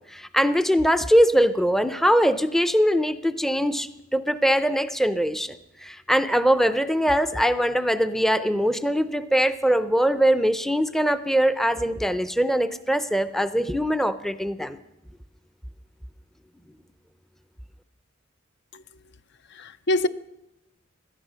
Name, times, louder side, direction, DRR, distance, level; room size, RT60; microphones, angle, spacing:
voice 1, 0.1-14.8, equal, ahead, 0.5 m, -22 dB
voice 2, 19.5-20.1, left 1 dB, 60° left, 0.6 m, -26 dB
17.5 x 12.0 x 6.3 m
head